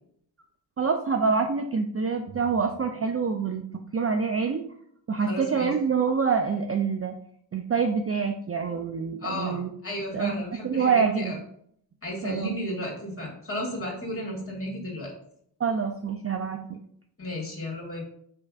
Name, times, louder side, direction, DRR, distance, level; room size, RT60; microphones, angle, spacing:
voice 1, 0.8-3.7 3.9-4.6 5.1-7.2 7.5-9.7 10.1-11.3 12.2-12.5 15.6-16.8, right 5 dB, 35° right, 5 dB, 0.4 m, -26 dB
voice 2, 5.2-5.7 9.2-11.4 12.0-15.1 17.2-18.0, left 1 dB, 30° left, -2 dB, 1.7 m, -33 dB
5.2 x 3.2 x 2.4 m, 0.67 s
cardioid pair, 40°, 47 cm